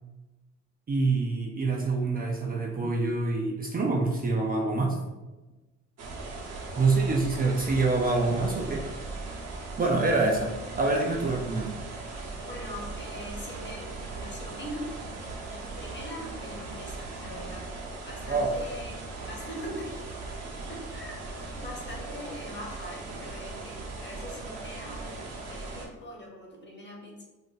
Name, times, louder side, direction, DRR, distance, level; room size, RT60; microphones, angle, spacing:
voice 1, 0.9-5.0 6.8-8.8 9.8-10.5 10.8-11.7 18.3-18.5, right 3 dB, 30° right, 0 dB, 0.4 m, -26 dB
sound 1, 6.0-25.9, right 3 dB, 55° right, 0.8 m, -39 dB
voice 2, 12.5-14.9 15.5-17.7 18.0-20.1 20.7-21.3 21.5-25.2 25.5-27.2, equal, 35° left, -1 dB, 1.0 m, -42 dB
2.5 x 2.1 x 3.9 m, 1.1 s
cardioid pair, 90°, 30 cm